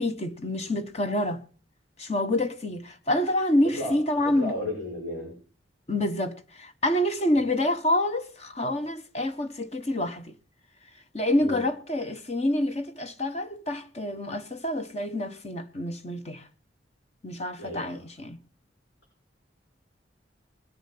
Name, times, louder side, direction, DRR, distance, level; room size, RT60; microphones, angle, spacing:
voice 1, 0.0-1.4 2.0-4.5 5.9-10.3 11.1-16.4 17.2-18.4, left 1 dB, 35° left, 1.1 m, -27 dB
voice 2, 3.8-5.3 7.3-7.5 11.4-11.6 17.6-18.1, left 1 dB, 75° left, 6.1 m, -34 dB
20.0 x 7.0 x 5.9 m
head